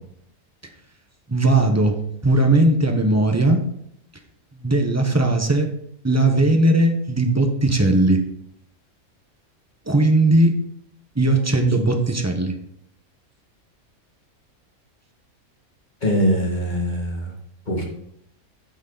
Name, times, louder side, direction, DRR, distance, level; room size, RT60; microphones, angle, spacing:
voice 1, 1.3-2.0 2.2-3.6 4.6-5.7 6.0-8.2 9.9-10.5 11.2-12.5, right 2 dB, 10° right, 4 dB, 0.9 m, -18 dB
voice 2, 16.0-17.3 17.7-17.9, equal, 30° left, -1 dB, 2.1 m, -22 dB
9.5 x 6.3 x 4.0 m, 0.72 s
omnidirectional pair, 1.5 m